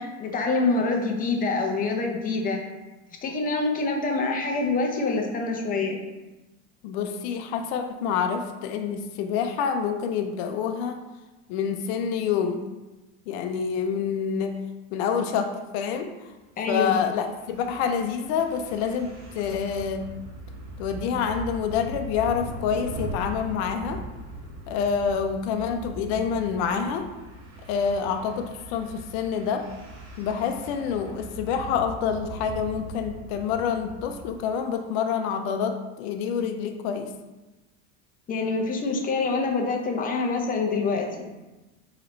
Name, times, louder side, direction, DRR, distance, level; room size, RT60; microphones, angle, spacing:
voice 1, 0.0-2.6 3.2-6.0 16.6-17.0 38.3-41.3, left 3 dB, 25° left, 2 dB, 0.6 m, -26 dB
voice 2, 6.8-11.0 11.5-12.7 13.3-14.6 14.9-16.1 16.7-20.1 20.8-24.0 24.7-27.1 27.7-29.7 30.2-37.1, left 7 dB, 70° left, 6 dB, 0.5 m, -27 dB
sound 1, 16.7-34.4, right 1 dB, 55° right, 1.0 m, -40 dB
3.9 x 2.9 x 3.1 m, 1.1 s
supercardioid pair, 115°, 34 cm